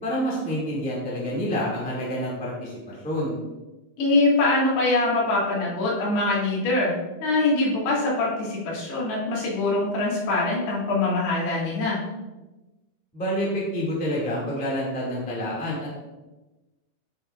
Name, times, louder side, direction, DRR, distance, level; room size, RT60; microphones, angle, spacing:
voice 1, 0.0-3.4 13.1-15.9, equal, 5° left, -6 dB, 1.2 m, -28 dB
voice 2, 4.0-12.0, left 2 dB, 80° left, -6 dB, 4.2 m, -23 dB
11.5 x 6.1 x 2.5 m, 1.1 s
omnidirectional pair, 4.6 m